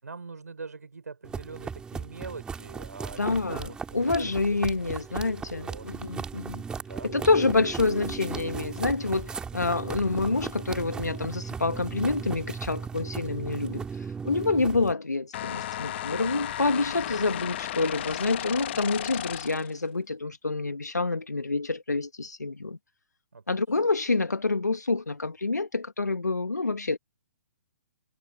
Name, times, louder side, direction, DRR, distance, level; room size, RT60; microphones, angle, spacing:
voice 1, 0.0-4.3 4.8-5.9 6.8-7.6 8.0-8.3 16.8-17.1 23.3-23.8, right 4 dB, 75° right, 6.0 m, -44 dB
sound 1, 1.2-14.9, right 5 dB, 10° right, 2.8 m, -37 dB
voice 2, 3.2-3.7 3.9-6.6 7.1-22.8 23.5-27.0, left 3 dB, 85° left, 1.6 m, -27 dB
sound 2, 15.3-19.8, left 13 dB, 40° left, 1.0 m, -34 dB
figure-of-eight pair, 130°, 9 cm